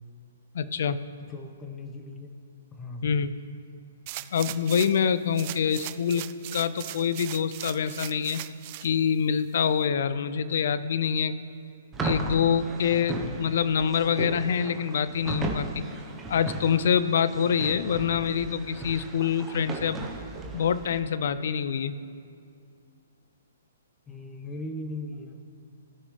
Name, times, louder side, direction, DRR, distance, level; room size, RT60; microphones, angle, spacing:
voice 1, 0.5-1.0 3.0-3.3 4.3-8.4 8.8-11.5 12.0-15.8 16.3-20.1 20.5-21.9, left 7 dB, 60° left, 14 dB, 0.5 m, -26 dB
voice 2, 1.3-2.3 2.7-3.0 24.1-25.4, left 2 dB, 15° left, 4 dB, 1.1 m, -38 dB
sound 1, 4.1-5.0 5.3-8.9 9.4-9.5, right 17 dB, 40° right, 0.3 m, -39 dB
sound 2, 11.9-21.0, right 3 dB, 15° right, 1.0 m, -36 dB
16.0 x 6.2 x 3.3 m, 2.4 s
hypercardioid pair, 135°, 0 cm